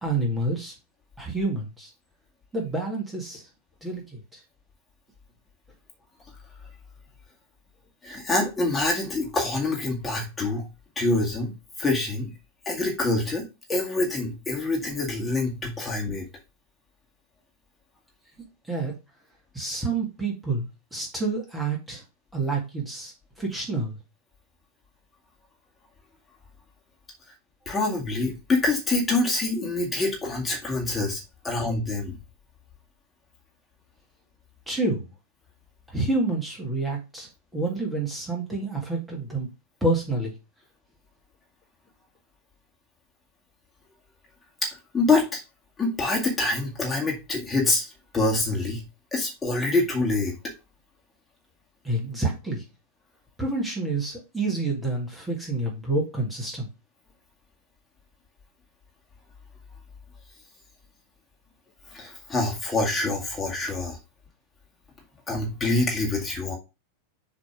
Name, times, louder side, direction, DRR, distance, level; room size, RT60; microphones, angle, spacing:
voice 1, 0.0-0.7 1.2-1.9 2.5-3.4 3.8-4.4 18.7-18.9 19.5-22.0 22.3-23.1 23.4-24.0 34.7-35.1 35.9-39.5 39.8-40.3 51.8-52.6 53.4-56.7, right 2 dB, 10° right, -1 dB, 1.9 m, -28 dB
voice 2, 8.0-10.7 11.0-11.5 11.8-12.3 12.7-16.2 27.7-32.2 44.6-44.7 44.9-45.4 45.8-47.9 48.1-48.8 49.1-50.3 61.9-64.0 65.3-66.6, left 2 dB, 15° left, -2 dB, 2.1 m, -26 dB
7.0 x 3.4 x 4.6 m, 0.27 s
figure-of-eight pair, 90°, 0 cm